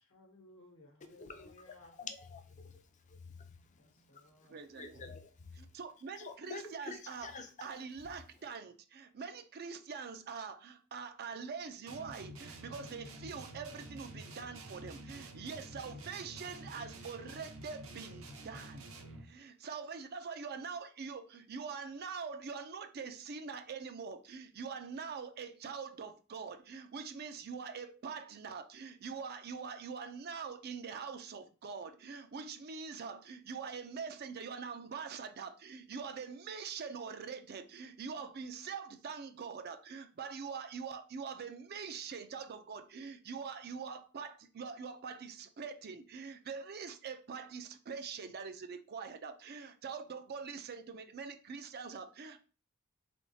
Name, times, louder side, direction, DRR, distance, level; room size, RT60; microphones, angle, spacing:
voice 1, 0.0-1.9 3.8-4.7, left 2 dB, 65° left, 1.0 m, -60 dB
voice 2, 1.2-5.8 6.1-7.8, left 4 dB, 35° left, 0.5 m, -49 dB
voice 3, 4.5-5.0 5.6-7.3 7.6-18.9 19.2-52.4, right 5 dB, 50° right, 0.4 m, -44 dB
sound 1, 11.9-19.4, right 2 dB, 70° right, 0.8 m, -49 dB
3.8 x 3.4 x 2.7 m
head